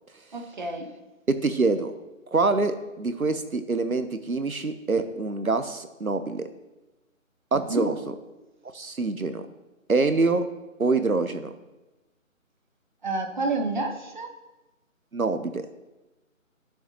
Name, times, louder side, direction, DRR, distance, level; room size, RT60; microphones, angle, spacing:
voice 1, 0.3-0.9 7.7-7.9 13.0-14.3, right 3 dB, 35° right, 4 dB, 1.3 m, -29 dB
voice 2, 1.3-1.9 2.3-6.4 7.5-8.0 8.7-9.4 9.9-10.5 10.8-11.5 15.1-15.6, right 3 dB, 90° right, 10 dB, 1.1 m, -25 dB
16.5 x 7.2 x 3.1 m, 1.1 s
figure-of-eight pair, 160°, 41 cm